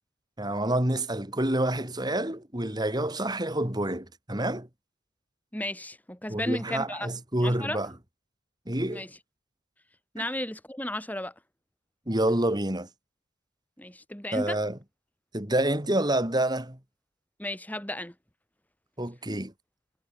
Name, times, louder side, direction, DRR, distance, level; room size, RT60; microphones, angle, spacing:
voice 1, 0.4-4.7 6.3-7.9 8.7-9.1 10.2-10.3 12.1-12.9 14.3-14.8 15.3-16.8 19.0-19.5, right 1 dB, 20° right, 2.8 m, -28 dB
voice 2, 5.5-7.1 7.4-7.8 8.9-9.1 10.1-11.3 13.8-14.6 17.4-18.1, left 1 dB, 10° left, 3.6 m, -34 dB
head